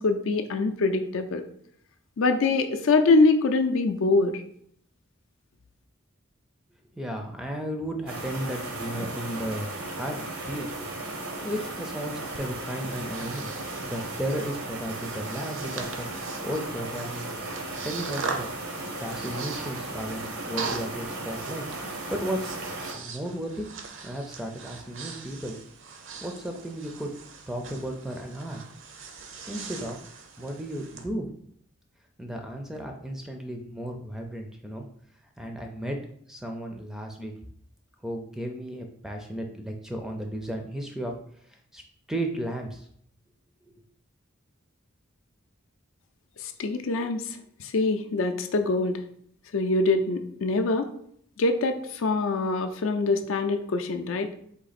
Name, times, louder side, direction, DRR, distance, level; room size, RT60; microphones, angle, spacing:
voice 1, 0.0-1.4 2.2-4.4 46.4-49.0 49.5-50.9 51.4-54.3, left 3 dB, 70° left, 6 dB, 0.4 m, -24 dB
voice 2, 7.0-10.7 11.4-13.5 13.8-16.1 16.4-17.3 17.8-18.5 19.0-21.7 22.1-22.5 22.9-23.7 24.0-25.6 26.2-27.1 27.5-28.6 29.5-30.0 30.4-31.3 32.2-34.9 35.4-37.3 38.0-41.2 41.7-41.8 42.1-42.9, right 1 dB, ahead, 3 dB, 0.4 m, -34 dB
sound 1, 8.1-22.9, right 2 dB, 85° right, 1.0 m, -36 dB
Breathing, 12.3-31.0, right 4 dB, 65° right, 0.6 m, -41 dB
3.9 x 2.8 x 4.1 m, 0.66 s
head